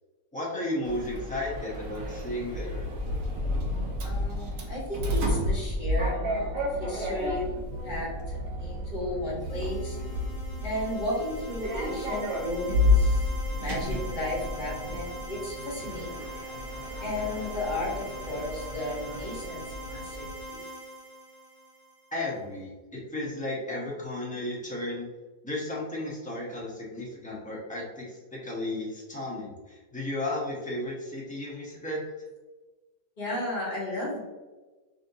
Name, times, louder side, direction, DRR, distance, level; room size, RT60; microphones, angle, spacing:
voice 1, 0.3-2.8 22.1-22.7 23.1-25.1 25.4-32.0, left 1 dB, 10° left, -6 dB, 0.4 m, -34 dB
Sliding door, 0.8-20.4, left 1 dB, 60° right, 0.9 m, -31 dB
voice 2, 4.0-7.5 7.8-10.0 10.6-16.3 17.0-20.6 33.2-34.2, left 1 dB, 30° left, -5 dB, 1.1 m, -34 dB
sound 1, 9.5-22.2, right 1 dB, 50° left, 0.6 m, -42 dB
5.0 x 2.6 x 2.7 m, 1.2 s
omnidirectional pair, 1.9 m